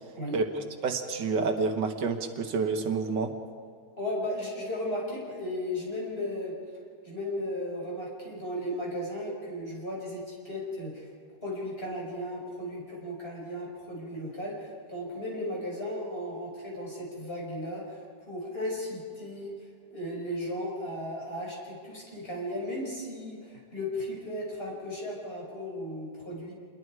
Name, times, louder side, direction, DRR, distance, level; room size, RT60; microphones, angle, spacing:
voice 1, 0.8-3.3, right 4 dB, 85° right, 6 dB, 2.0 m, -28 dB
voice 2, 4.0-6.5 7.0-11.1 11.4-26.5, left 1 dB, 35° left, -4 dB, 6.5 m, -35 dB
27.0 x 22.0 x 4.8 m, 2.1 s
omnidirectional pair, 1.8 m